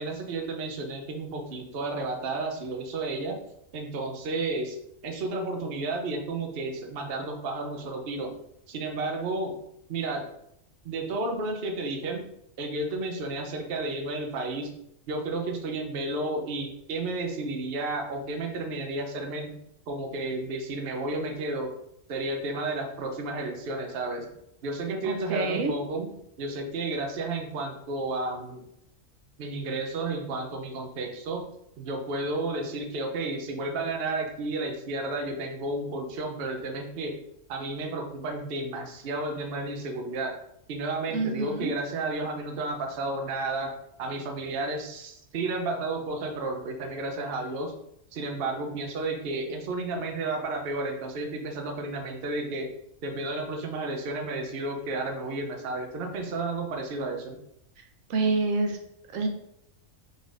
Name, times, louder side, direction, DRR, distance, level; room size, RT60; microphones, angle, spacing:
voice 1, 0.0-3.4 3.7-4.8 5.0-8.4 8.7-9.6 9.9-10.3 10.8-12.2 12.6-14.7 15.1-19.5 19.9-21.7 22.1-24.3 24.6-26.1 26.4-28.6 29.4-31.4 31.8-37.2 37.5-40.3 40.7-43.7 44.0-47.7 48.1-52.7 53.0-57.4, right 2 dB, 55° right, 3 dB, 0.9 m, -32 dB
voice 2, 25.0-25.7 41.1-41.7 58.1-58.8 59.1-59.3, right 3 dB, 80° right, 4 dB, 1.1 m, -27 dB
5.1 x 3.9 x 2.5 m, 0.75 s
omnidirectional pair, 1.4 m